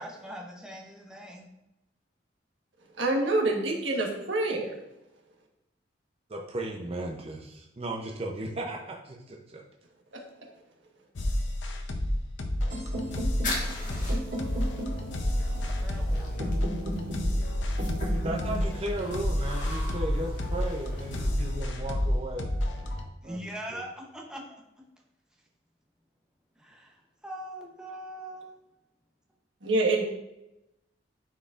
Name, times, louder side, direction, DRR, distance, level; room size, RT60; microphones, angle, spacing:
voice 1, 0.0-1.4 15.8-16.6 23.2-24.6 26.6-28.6, equal, 5° right, -1 dB, 0.8 m, -42 dB
voice 2, 3.0-4.8 10.1-10.2 29.6-30.0, right 2 dB, 90° right, 0 dB, 1.3 m, -26 dB
voice 3, 6.3-9.6 18.2-22.5 23.2-23.4 23.7-23.8, right 1 dB, 35° right, 0 dB, 0.6 m, -35 dB
sound 1, 11.2-23.1, left 1 dB, 75° left, 0.7 m, -30 dB
sound 2, 12.7-20.6, right 1 dB, 70° right, 2.4 m, -38 dB
sound 3, 12.9-21.6, left 2 dB, 45° left, 1.6 m, -42 dB
10.0 x 4.7 x 2.5 m, 0.90 s
head